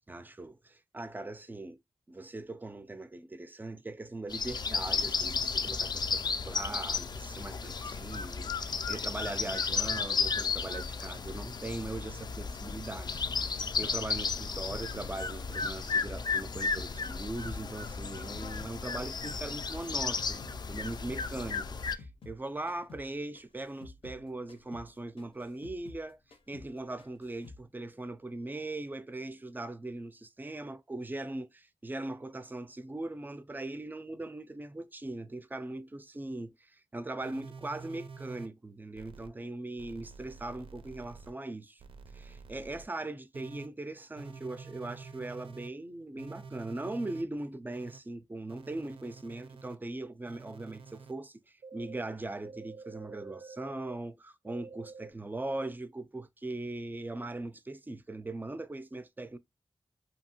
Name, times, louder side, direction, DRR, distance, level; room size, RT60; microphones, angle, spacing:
voice 1, 0.1-1.8 2.1-26.2 26.5-41.8 42.1-51.4 51.7-59.4, right 2 dB, 20° right, 0.4 m, -40 dB
sound 1, 4.3-22.0, left 5 dB, 50° left, 0.3 m, -34 dB
sound 2, 13.1-18.8 19.0-22.4 22.7-23.1 23.3-26.1 26.3-26.7 27.0-27.6, left 3 dB, 90° left, 0.7 m, -52 dB
sound 3, 37.2-38.5 38.9-39.3 39.8-41.3 41.8-42.8 43.3-43.7 44.2-45.7 46.2-47.2 47.7-48.0 48.5-49.8 50.2-51.1 51.6-51.9 52.4-54.0 54.5-55.1, right 4 dB, 80° right, 0.4 m, -48 dB
2.8 x 2.6 x 2.6 m
wide cardioid pair, 95°, 9 cm